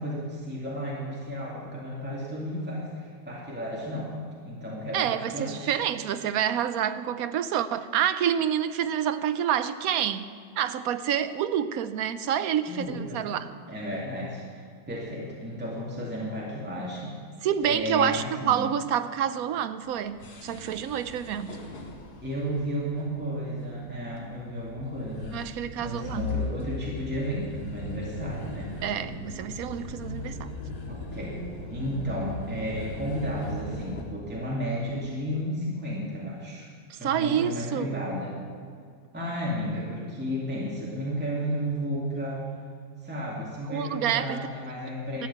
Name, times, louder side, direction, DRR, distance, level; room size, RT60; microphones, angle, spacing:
voice 1, 0.0-4.1 4.4-5.7 12.7-13.2 13.7-14.4 14.9-17.2 17.7-18.6 22.2-25.4 25.8-28.7 30.9-31.4 31.7-36.7 37.0-38.4 39.1-42.5 43.0-45.3, equal, 5° right, -5 dB, 2.3 m, -33 dB
voice 2, 4.9-13.5 17.4-21.6 25.3-26.3 28.8-30.5 36.9-37.9 43.7-44.5 45.2-45.3, right 9 dB, 70° right, 12 dB, 1.1 m, -28 dB
sound 1, 19.9-34.0, left 2 dB, 90° left, 2.2 m, -39 dB
13.5 x 8.7 x 8.4 m, 2.2 s
omnidirectional pair, 1.6 m